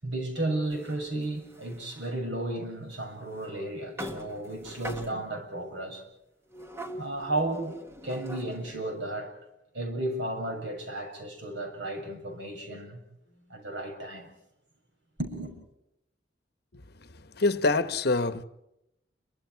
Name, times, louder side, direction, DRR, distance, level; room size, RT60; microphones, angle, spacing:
voice 1, 0.0-6.0 7.0-9.3 9.7-13.0 13.5-14.3 15.2-15.5, right 1 dB, 80° right, 7.2 m, -33 dB
sound 1, 0.7-2.2 2.9-3.0 3.4-3.5 4.0-5.5 6.5-8.8, equal, 15° right, 1.6 m, -42 dB
voice 2, 16.7-18.4, left 3 dB, 60° left, 1.2 m, -27 dB
29.5 x 24.5 x 4.7 m
head